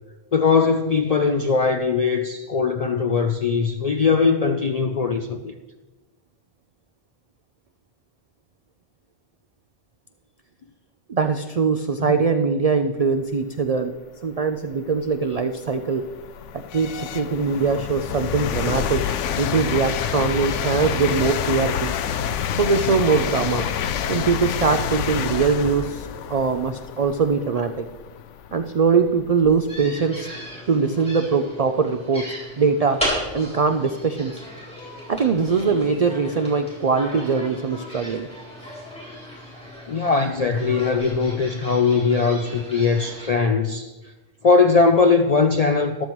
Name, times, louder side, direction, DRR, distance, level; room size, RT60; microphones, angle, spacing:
voice 1, 0.3-5.5 12.0-12.1 39.9-43.9 44.4-46.1, left 4 dB, 60° left, 6 dB, 0.4 m, -20 dB
voice 2, 11.1-13.9 14.2-16.1 16.5-19.0 19.4-21.9 22.5-23.6 24.1-27.8 28.5-30.3 30.7-33.0 33.3-34.4 35.1-38.3, right 5 dB, 70° right, 7 dB, 0.3 m, -22 dB
sound 1, 14.3-14.4 15.0-29.8, left 8 dB, 75° left, 0.9 m, -28 dB
sound 2, 29.7-43.3, equal, 5° left, 3.9 m, -35 dB
13.5 x 11.5 x 3.1 m, 1.2 s
omnidirectional pair, 1.3 m